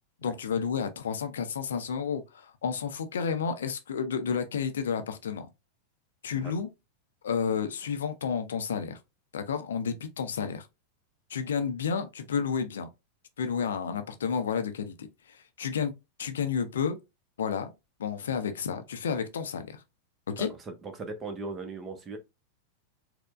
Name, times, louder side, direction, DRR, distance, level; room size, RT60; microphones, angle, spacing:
voice 1, 0.2-5.5 6.2-6.7 7.2-9.0 9.3-10.7 11.3-12.9 13.4-15.9 16.2-17.0 17.4-17.7 18.0-19.8 20.3-20.5, left 6 dB, 65° left, 0.4 m, -31 dB
voice 2, 20.4-22.2, right 3 dB, 20° right, 0.7 m, -39 dB
4.3 x 2.1 x 2.3 m
figure-of-eight pair, 90°, 0 cm